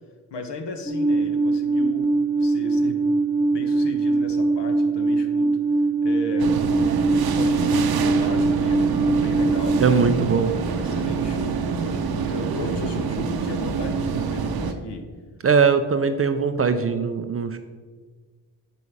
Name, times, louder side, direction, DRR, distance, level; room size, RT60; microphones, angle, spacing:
voice 1, 0.3-2.1 2.4-3.1 3.5-5.6 6.0-6.6 7.3-9.8 10.3-15.1, left 2 dB, 55° left, 5 dB, 1.3 m, -35 dB
Alarm, 0.9-9.8, right 3 dB, 10° left, 1.2 m, -22 dB
sound 1, 6.4-14.7, right 5 dB, 45° right, 0.8 m, -26 dB
voice 2, 9.8-10.5 15.4-17.6, right 5 dB, 30° right, 8 dB, 0.5 m, -20 dB
6.9 x 5.5 x 4.7 m, 1.5 s
hypercardioid pair, 50°, 49 cm